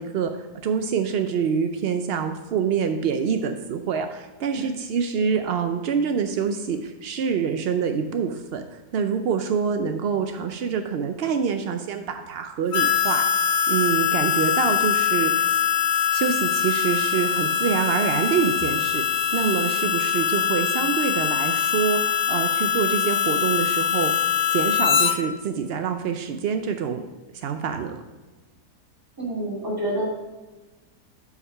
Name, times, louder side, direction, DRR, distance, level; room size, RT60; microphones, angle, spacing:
voice 1, 0.0-13.2 13.7-15.5 16.1-24.1 24.5-27.0 27.3-28.0, right 6 dB, 80° right, 6 dB, 0.5 m, -26 dB
Harmonica, 12.7-25.2, left 9 dB, 85° left, 1.3 m, -23 dB
voice 2, 29.2-30.1, right 1 dB, 15° right, -5 dB, 2.2 m, -28 dB
8.1 x 4.9 x 5.4 m, 1.2 s
omnidirectional pair, 1.6 m